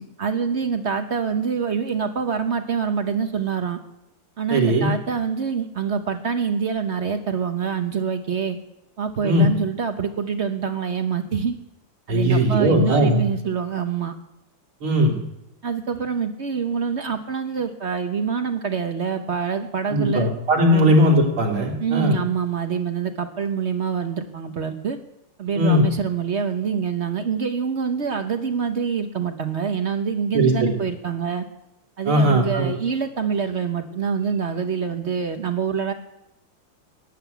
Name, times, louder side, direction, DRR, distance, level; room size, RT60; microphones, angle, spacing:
voice 1, 0.0-3.8 4.4-8.6 9.0-11.6 12.1-14.1 15.6-20.3 20.7-21.0 21.8-25.0 25.4-31.4 32.0-35.9, right 6 dB, 55° right, 7 dB, 0.8 m, -25 dB
voice 2, 4.5-4.9 9.2-9.5 12.1-13.2 14.8-15.2 19.9-22.2 25.6-25.8 30.3-30.7 32.1-32.7, equal, 85° right, 1 dB, 3.6 m, -18 dB
14.0 x 7.8 x 9.3 m, 0.87 s
omnidirectional pair, 2.3 m